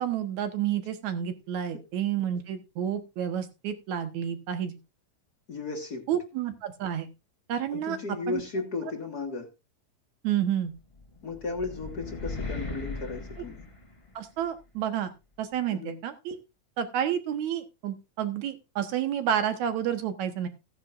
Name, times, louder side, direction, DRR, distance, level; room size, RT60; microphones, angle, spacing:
voice 1, 0.0-4.8 6.1-7.1 7.5-8.0 8.3-8.4 10.2-10.7 14.2-15.1 15.4-16.4 16.8-20.5, right 9 dB, 80° right, 9 dB, 2.6 m, -30 dB
voice 2, 5.5-6.1 7.7-9.5 11.2-13.7 15.7-16.0, left 3 dB, 40° left, 1 dB, 1.8 m, -35 dB
sound 1, 10.9-14.4, left 3 dB, 15° left, 1.3 m, -38 dB
16.0 x 9.9 x 2.5 m, 0.26 s
omnidirectional pair, 3.3 m